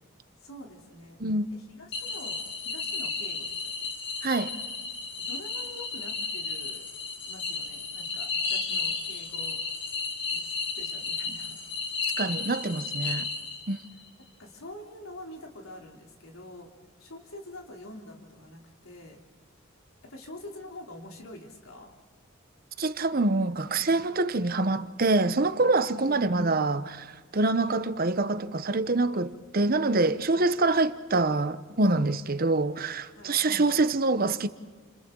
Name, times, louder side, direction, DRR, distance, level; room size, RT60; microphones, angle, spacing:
voice 1, 0.4-1.2 1.5-3.9 5.2-6.9 7.2-9.6 10.3-11.6 14.2-16.7 17.0-19.2 20.0-21.9 26.0-26.4 33.1-33.4, left 1 dB, 85° left, 3.4 m, -46 dB
Cosmic insects-Tanya v, 1.9-13.9, left 4 dB, 60° left, 4.0 m, -33 dB
voice 2, 4.2-4.6 12.2-13.3 13.7-13.8 22.8-34.5, right 2 dB, 45° right, 0.9 m, -25 dB
29.5 x 28.5 x 3.9 m
head